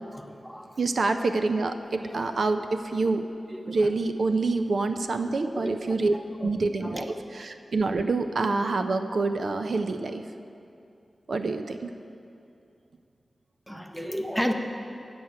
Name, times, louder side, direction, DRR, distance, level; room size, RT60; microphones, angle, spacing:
voice 1, 0.1-0.7 1.0-1.1 2.0-2.4 3.0-3.2 3.5-3.9 5.5-6.5 6.8-7.1 13.7-14.5, equal, ahead, 4 dB, 0.6 m, -34 dB
voice 2, 0.8-3.2 3.7-6.2 6.4-7.0 7.3-10.2 11.3-11.9, right 3 dB, 65° right, 7 dB, 0.4 m, -26 dB
8.0 x 7.8 x 5.7 m, 2.6 s
wide cardioid pair, 120°, 0 cm